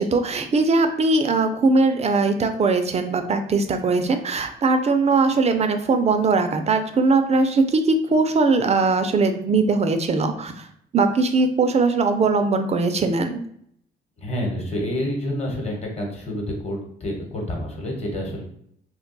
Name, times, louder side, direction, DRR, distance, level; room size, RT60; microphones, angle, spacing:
voice 1, 0.0-10.6 10.9-13.4, right 3 dB, 35° right, 7 dB, 0.4 m, -20 dB
voice 2, 14.2-18.4, left 1 dB, 35° left, 0 dB, 1.0 m, -28 dB
2.3 x 2.2 x 3.9 m, 0.68 s
cardioid pair, 90°, 20 cm